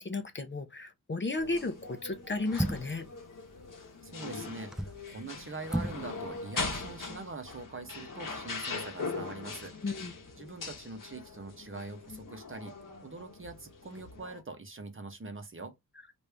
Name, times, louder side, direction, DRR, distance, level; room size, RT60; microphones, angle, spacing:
voice 1, 0.0-3.1 9.8-10.1, left 3 dB, 30° left, 0.6 m, -34 dB
sound 1, 1.4-14.4, left 4 dB, 60° left, 1.1 m, -41 dB
sound 2, 1.4-1.7 2.5-3.1 4.5-5.0 5.6-6.1 6.3-6.4, equal, ahead, 0.3 m, -33 dB
voice 2, 4.0-9.7 10.4-15.7, right 3 dB, 35° right, 0.8 m, -43 dB
3.1 x 2.6 x 3.3 m
cardioid pair, 65°, 37 cm